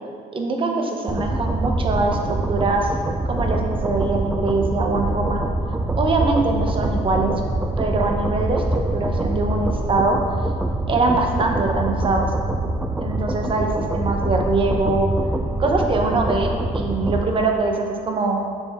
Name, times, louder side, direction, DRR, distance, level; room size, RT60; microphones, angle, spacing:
voice 1, 0.3-2.9 3.3-5.4 6.0-7.3 7.8-10.2 10.9-12.3 13.0-15.1 15.6-18.4, right 3 dB, 30° right, 2 dB, 0.9 m, -23 dB
sound 1, 1.1-17.2, right 2 dB, 10° right, 0.4 m, -24 dB
6.7 x 5.3 x 3.5 m, 2.2 s
cardioid pair, 110°, 17 cm